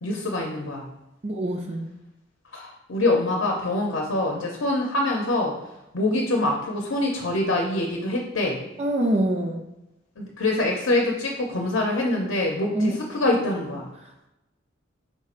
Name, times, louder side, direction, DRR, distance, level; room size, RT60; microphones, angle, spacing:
voice 1, 0.0-0.9 2.5-5.5 5.9-8.6 10.2-13.9, left 2 dB, 80° left, 0 dB, 0.7 m, -25 dB
voice 2, 1.2-1.9 8.8-9.6 12.7-13.0, right 1 dB, 30° right, 1 dB, 0.4 m, -24 dB
4.6 x 4.2 x 2.5 m, 0.94 s
head